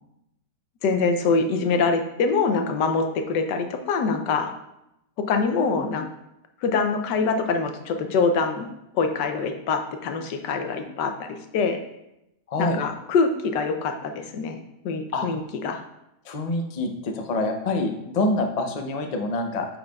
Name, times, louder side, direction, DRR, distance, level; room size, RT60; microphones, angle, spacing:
voice 1, 0.8-4.5 5.3-6.1 6.6-8.7 8.9-11.8 12.6-14.6 14.8-15.8, left 4 dB, 90° left, 6 dB, 1.4 m, -24 dB
voice 2, 12.5-12.8 15.1-15.3 16.2-19.7, left 2 dB, 60° left, 4 dB, 0.4 m, -26 dB
8.7 x 5.5 x 2.3 m, 0.86 s
omnidirectional pair, 1.8 m